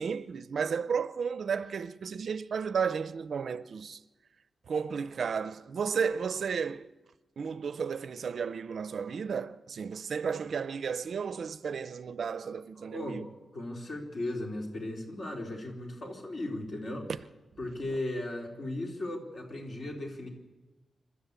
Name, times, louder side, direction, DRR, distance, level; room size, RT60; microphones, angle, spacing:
voice 1, 0.0-4.0 4.7-6.9 7.4-13.3 17.1-17.2, right 6 dB, 60° right, 0.6 m, -33 dB
voice 2, 12.8-13.2 13.5-17.1 17.6-20.3, left 1 dB, 50° left, 3.7 m, -36 dB
27.0 x 13.0 x 8.2 m
wide cardioid pair, 150°, 0 cm